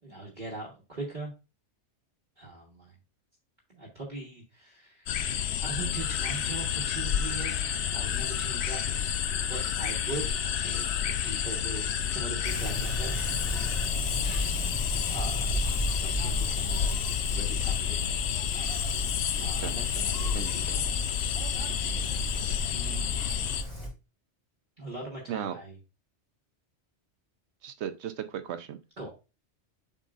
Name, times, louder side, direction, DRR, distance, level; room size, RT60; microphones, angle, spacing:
voice 1, 0.0-1.3 2.4-2.9 3.7-5.2 5.6-8.8 9.5-10.3 10.5-13.3 14.2-14.6 15.1-15.6 15.9-17.1 17.3-18.0 19.4-20.9 21.9-22.4 22.7-23.2 24.8-25.8 29.0-29.1, right 2 dB, 45° right, -3 dB, 1.5 m, -41 dB
sound 1, 5.1-23.6, left 9 dB, 70° left, 0.8 m, -30 dB
sound 2, 6.0-13.9, right 1 dB, ahead, 1.1 m, -45 dB
Wind, 12.4-23.9, equal, 30° left, 2.4 m, -35 dB
voice 2, 20.3-20.8 25.3-25.6 27.6-28.8, right 10 dB, 75° right, 10 dB, 0.9 m, -36 dB
7.5 x 5.3 x 2.5 m, 0.29 s
omnidirectional pair, 1.2 m